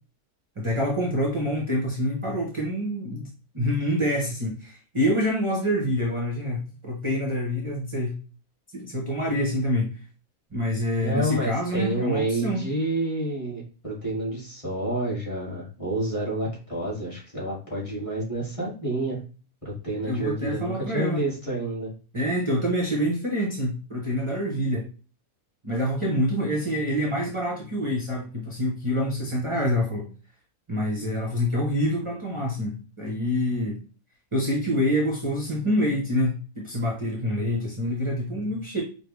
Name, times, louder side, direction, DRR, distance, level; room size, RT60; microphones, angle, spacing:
voice 1, 0.6-3.3 3.5-8.1 8.7-10.0 10.5-12.6 20.0-21.2 22.1-24.8 25.6-30.1 30.7-33.8 34.3-38.8, equal, 30° right, -1 dB, 0.7 m, -26 dB
voice 2, 11.0-19.2 19.6-21.9 31.0-31.1, right 1 dB, 20° left, -6 dB, 2.0 m, -29 dB
5.0 x 2.6 x 3.1 m, 0.36 s
omnidirectional pair, 1.6 m